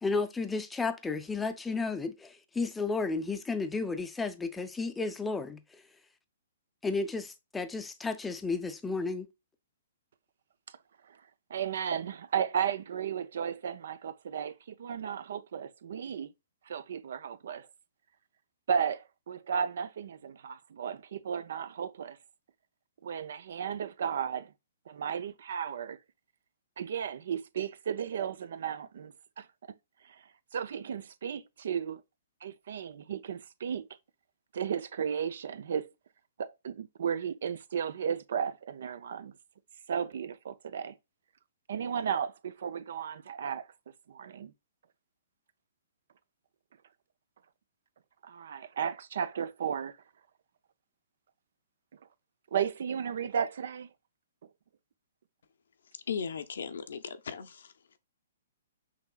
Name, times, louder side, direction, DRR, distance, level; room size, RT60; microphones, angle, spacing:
voice 1, 0.0-5.6 6.8-9.3, left 4 dB, 10° left, 0.5 m, -33 dB
voice 2, 11.5-16.3 16.7-17.7 18.7-22.2 23.0-24.5 24.9-26.0 26.8-29.5 30.0-30.2 30.5-32.0 32.4-33.9 34.5-35.9 36.4-39.3 39.9-40.9 41.7-43.7 44.1-44.5 48.2-49.9 52.5-53.9, right 7 dB, 65° right, 0.4 m, -34 dB
voice 3, 56.1-57.7, left 6 dB, 75° left, 0.6 m, -37 dB
5.9 x 2.9 x 2.2 m
hypercardioid pair, 135°, 0 cm